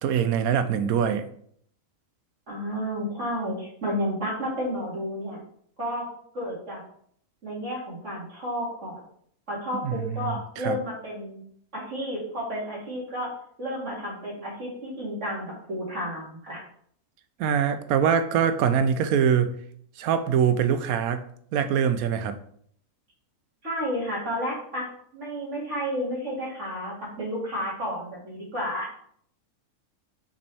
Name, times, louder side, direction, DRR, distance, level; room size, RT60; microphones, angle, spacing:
voice 1, 0.0-1.3 9.7-10.8 17.4-19.6 20.0-21.2 21.5-22.4, right 8 dB, 75° right, 10 dB, 1.1 m, -24 dB
voice 2, 2.5-5.4 5.8-6.1 6.3-6.8 7.4-9.0 9.5-11.4 11.7-13.3 13.6-16.6 23.6-24.9 25.1-29.0, equal, 50° right, -5 dB, 2.7 m, -31 dB
5.3 x 5.2 x 3.4 m, 0.64 s
omnidirectional pair, 1.6 m